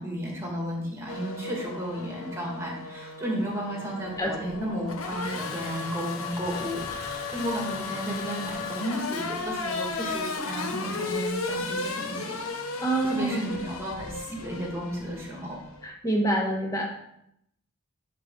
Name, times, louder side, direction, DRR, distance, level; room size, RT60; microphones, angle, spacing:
voice 1, 0.0-12.4 13.0-15.6, equal, 15° right, -2 dB, 2.1 m, -33 dB
Race car auto racing / Accelerating revving vroom, 1.1-15.9, left 3 dB, 85° left, 1.0 m, -35 dB
voice 2, 12.8-13.3 15.8-16.9, right 1 dB, 15° left, 0 dB, 1.2 m, -26 dB
11.0 x 4.2 x 3.8 m, 0.76 s
head